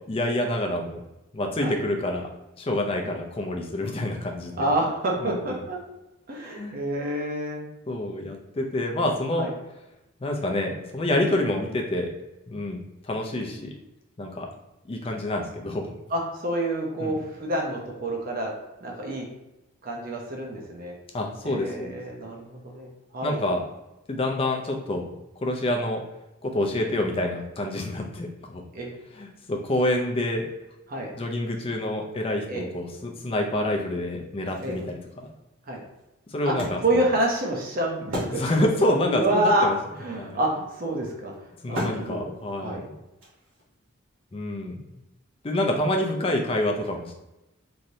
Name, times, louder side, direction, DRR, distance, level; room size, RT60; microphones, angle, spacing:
voice 1, 0.1-1.0 1.3-2.3 2.6-4.7 5.2-5.6 6.4-6.8 7.9-9.5 10.2-12.1 12.5-13.7 14.2-14.5 14.9-15.9 17.0-17.2 21.1-22.0 23.2-23.6 24.1-26.0 26.4-28.6 29.2-30.5 31.2-35.3 36.3-37.0 38.3-39.8 40.1-40.4 41.6-42.9 44.3-44.8 45.4-47.1, left 1 dB, 25° left, 2 dB, 0.4 m, -27 dB
voice 2, 4.6-5.8 6.3-7.6 9.4-9.5 16.1-18.5 18.8-19.3 19.8-20.9 21.4-23.4 28.7-28.9 30.9-31.1 32.5-32.7 34.6-34.8 35.7-35.8 36.4-36.5 36.8-38.4 39.1-39.7 40.0-41.3 41.7-42.3 42.6-42.8, right 1 dB, 40° right, -1 dB, 0.5 m, -28 dB
Wood, 34.4-38.9 39.2-39.3 39.4-43.8, equal, 60° right, 1.1 m, -37 dB
3.1 x 2.6 x 2.6 m, 0.96 s
head